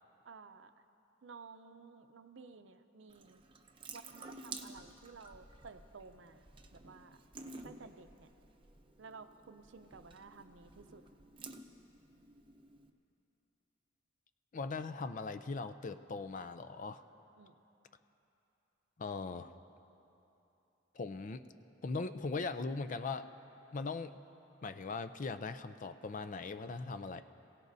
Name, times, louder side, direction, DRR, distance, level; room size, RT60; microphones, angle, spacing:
voice 1, 0.2-0.7 1.2-3.4 3.9-7.2 7.6-8.3 9.0-11.0 17.4-17.6, right 4 dB, 70° right, 9 dB, 0.6 m, -54 dB
Water tap faucet / Sink (filling or washing) / Drip, 3.1-12.9, right 3 dB, 25° right, 0.7 m, -52 dB
voice 2, 14.5-17.0 19.0-19.5 20.9-21.4 21.8-23.3 23.7-24.2 24.6-27.2, left 4 dB, 45° left, 11 dB, 0.5 m, -39 dB
27.5 x 17.0 x 2.7 m, 3.0 s
head